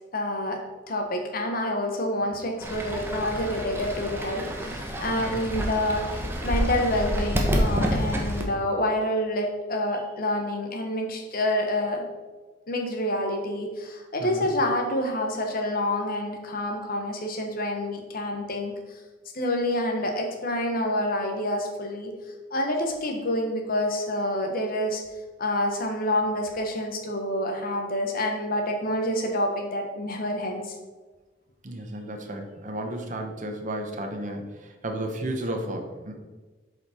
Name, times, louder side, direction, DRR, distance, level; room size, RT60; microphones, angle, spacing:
voice 1, 0.1-12.1 12.7-18.7 19.3-22.1 22.5-25.0 25.4-30.7, left 1 dB, 50° left, 3 dB, 1.2 m, -28 dB
Fowl / Bird, 2.6-8.4, equal, 15° right, 1.0 m, -28 dB
voice 2, 31.6-36.1, right 1 dB, 45° right, 3 dB, 1.0 m, -33 dB
8.0 x 5.1 x 4.4 m, 1.3 s
head